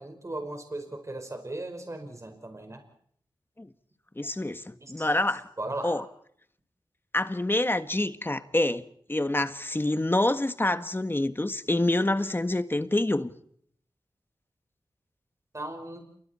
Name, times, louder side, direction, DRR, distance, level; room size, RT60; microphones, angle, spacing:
voice 1, 0.0-2.8 4.8-5.1 5.6-6.0 15.5-16.1, right 2 dB, 35° right, 5.0 m, -37 dB
voice 2, 4.1-5.5 5.8-6.0 7.1-8.8 9.1-13.3, left 1 dB, 25° left, 1.6 m, -27 dB
29.0 x 24.5 x 4.4 m
cardioid pair, 55°, 9 cm